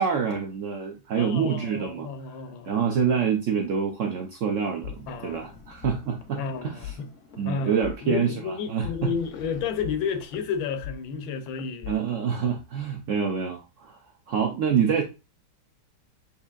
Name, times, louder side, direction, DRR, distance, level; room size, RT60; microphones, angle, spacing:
voice 1, 0.0-2.1 2.6-6.9 7.4-9.1 11.9-14.0 14.3-15.0, right 7 dB, 90° right, 0.6 m, -26 dB
voice 2, 1.2-2.9 5.1-5.6 6.4-7.1 7.4-11.9, left 6 dB, 85° left, 1.5 m, -32 dB
sound 1, 4.8-12.4, left 9 dB, 60° left, 0.8 m, -42 dB
7.0 x 2.7 x 2.4 m
omnidirectional pair, 2.1 m